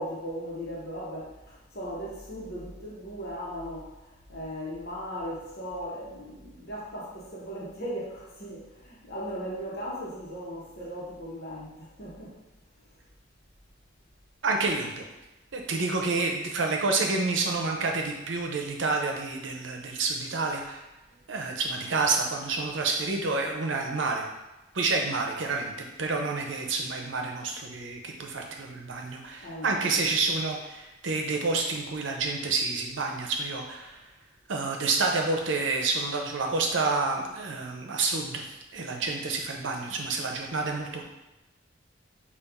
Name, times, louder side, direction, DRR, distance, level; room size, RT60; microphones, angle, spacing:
voice 1, 0.0-3.9 4.3-12.3 29.4-30.0, equal, 55° left, -6 dB, 1.1 m, -37 dB
voice 2, 14.4-15.1 15.5-20.8 21.3-24.2 24.7-34.0 34.5-41.0, right 3 dB, 80° right, 2 dB, 0.7 m, -29 dB
5.3 x 2.5 x 3.6 m, 1.0 s
head